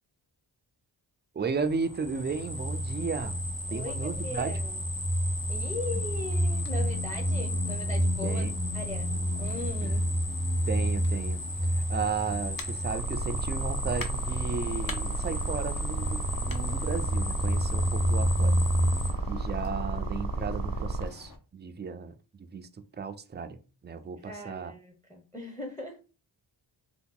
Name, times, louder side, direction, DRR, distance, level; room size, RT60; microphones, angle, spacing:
sound 1, 1.4-21.4, left 2 dB, 45° left, 0.7 m, -46 dB
voice 1, 1.4-3.4 3.7-4.5 8.2-8.6 9.8-9.9 10.7-11.4 11.7-18.6 19.3-22.2 22.5-22.7 23.0-24.7, right 5 dB, 25° right, 0.3 m, -34 dB
sound 2, 1.7-19.1, equal, 75° left, 1.3 m, -30 dB
voice 2, 3.7-4.8 5.5-8.4 8.7-10.0 17.9-18.2 24.2-26.0, left 2 dB, 10° left, 0.7 m, -39 dB
sound 3, 12.9-21.1, right 2 dB, 70° right, 0.6 m, -32 dB
2.8 x 2.3 x 3.6 m
cardioid pair, 55°, 48 cm